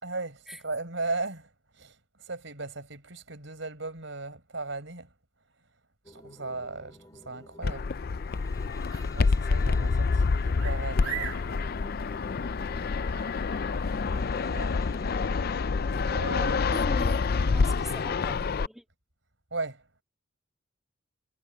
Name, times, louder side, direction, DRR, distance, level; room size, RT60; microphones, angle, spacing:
voice 1, 0.0-5.1 6.1-7.9 9.1-11.7 14.4-14.7 15.9-17.7 19.5-19.8, right 3 dB, 65° right, 6.2 m, -37 dB
sound 1, 6.0-16.5, left 1 dB, 20° left, 3.6 m, -50 dB
Fixed-wing aircraft airplane, 7.6-18.7, left 4 dB, 50° left, 0.4 m, -27 dB
sound 2, 8.3-14.2, right 9 dB, 80° right, 3.4 m, -43 dB
voice 2, 16.7-17.3 17.5-18.8, equal, ahead, 2.2 m, -41 dB
head